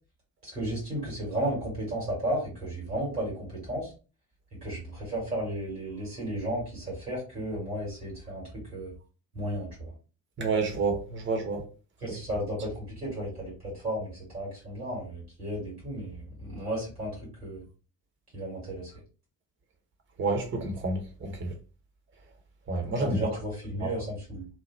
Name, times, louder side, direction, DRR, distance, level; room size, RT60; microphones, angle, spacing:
voice 1, 0.4-3.9 4.5-8.4 8.7-8.9 9.3-9.9 12.0-17.2 17.4-17.6 18.3-18.9 23.0-24.5, right 1 dB, 90° right, 1.5 m, -34 dB
voice 2, 10.4-11.6 12.0-12.1 20.2-21.3 22.7-23.2 23.8-23.9, right 3 dB, 25° right, 0.9 m, -29 dB
2.9 x 2.2 x 3.0 m
figure-of-eight pair, 45°, 44 cm